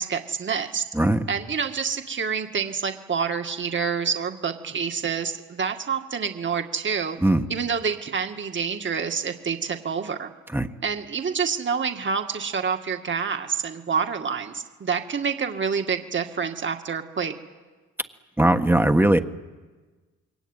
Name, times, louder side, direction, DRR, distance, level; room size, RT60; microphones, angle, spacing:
voice 1, 0.0-0.8 1.3-7.2 7.5-10.3 10.8-17.3, right 6 dB, 40° right, 5 dB, 2.1 m, -27 dB
voice 2, 0.9-1.3 7.2-7.4 10.5-10.7 18.4-19.2, right 1 dB, 5° right, 7 dB, 1.4 m, -19 dB
28.0 x 23.0 x 9.2 m, 1.3 s
cardioid pair, 90°, 30 cm